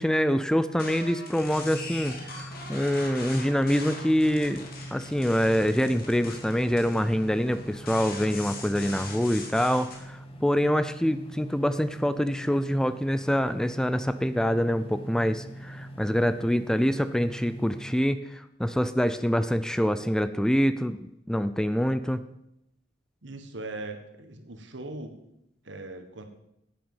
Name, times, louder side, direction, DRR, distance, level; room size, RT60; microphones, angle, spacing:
voice 1, 0.0-4.7 4.9-21.0 21.3-22.2, equal, 5° left, 12 dB, 0.4 m, -25 dB
sound 1, 0.7-10.0, left 3 dB, 55° left, 2.4 m, -42 dB
sound 2, 1.4-18.0, right 1 dB, 30° left, 1.7 m, -43 dB
voice 2, 23.2-25.2 25.6-26.3, right 2 dB, 75° right, 6 dB, 1.5 m, -39 dB
10.5 x 8.8 x 5.6 m, 0.82 s
head